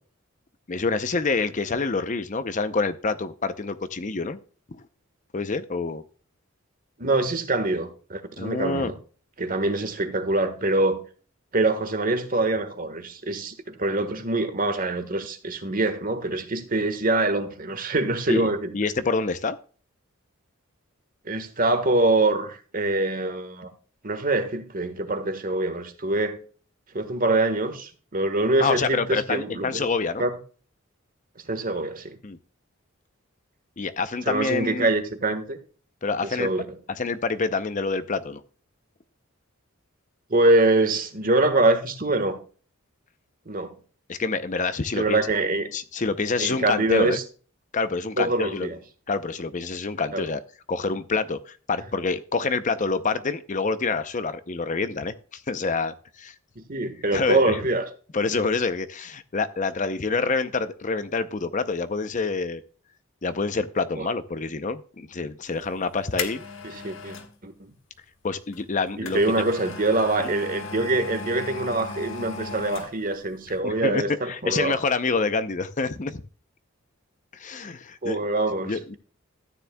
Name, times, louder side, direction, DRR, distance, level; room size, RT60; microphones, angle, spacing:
voice 1, 0.7-4.4 4.7-4.8 5.3-6.0 8.4-8.9 18.3-18.5 18.7-19.6 28.6-30.2 32.2-32.4 33.8-34.9 36.0-36.5 36.9-38.4 44.1-45.2 45.7-47.2 47.7-48.7 49.1-50.4 50.7-56.3 57.1-57.6 58.1-62.6 63.2-66.4 68.2-69.4 70.2-70.3 73.6-76.2 77.3-78.2 78.6-79.0, left 4 dB, 35° left, 0.6 m, -27 dB
voice 2, 7.0-8.9 9.4-11.0 11.5-18.7 21.2-23.7 24.0-26.4 26.9-29.9 30.2-30.4 31.5-32.2 34.3-35.6 36.4-36.6 40.3-42.4 43.5-43.7 44.9-45.7 46.4-47.2 48.2-48.8 50.1-50.3 56.7-57.9 64.0-64.1 66.6-67.2 67.4-67.5 69.0-74.8 78.0-79.0, right 2 dB, 40° right, 1.4 m, -24 dB
sound 1, 65.6-67.3 68.5-73.2 73.5-73.6, left 4 dB, 65° left, 1.6 m, -36 dB
13.5 x 9.6 x 2.2 m
head